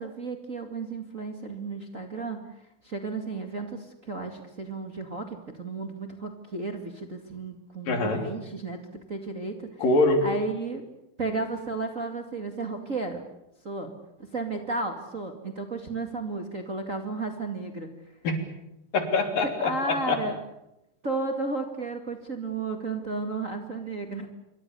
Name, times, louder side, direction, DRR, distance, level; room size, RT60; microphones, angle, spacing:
voice 1, 0.0-2.4 2.8-9.8 10.2-10.8 11.2-13.2 13.6-13.9 14.2-17.9 19.6-20.4 21.0-24.3, right 3 dB, 25° right, 5 dB, 2.1 m, -33 dB
voice 2, 7.9-8.2 9.8-10.2 18.2-18.4 18.9-20.2, left 2 dB, 75° left, 6 dB, 4.9 m, -24 dB
26.5 x 24.0 x 7.0 m, 0.88 s
omnidirectional pair, 4.0 m